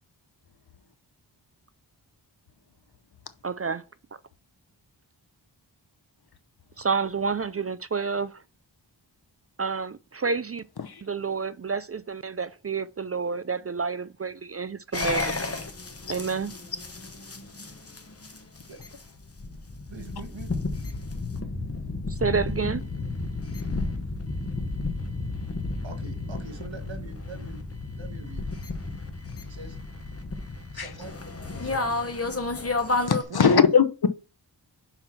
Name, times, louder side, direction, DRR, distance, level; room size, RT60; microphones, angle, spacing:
voice 1, 3.4-3.8 6.8-8.4 9.6-10.6 11.0-15.5 16.1-16.5 22.1-22.9, right 5 dB, 35° right, 0.4 m, -29 dB
sound 1, 14.9-33.2, left 3 dB, 30° left, 1.1 m, -32 dB
voice 2, 19.9-20.5 25.8-27.6 28.0-28.4 29.5-30.1 30.7-31.1 31.4-32.1 33.3-33.5, right 4 dB, 75° right, 1.5 m, -43 dB
voice 3, 33.1-34.1, left 6 dB, 55° left, 0.9 m, -20 dB
5.9 x 4.5 x 5.9 m
wide cardioid pair, 60°, 45 cm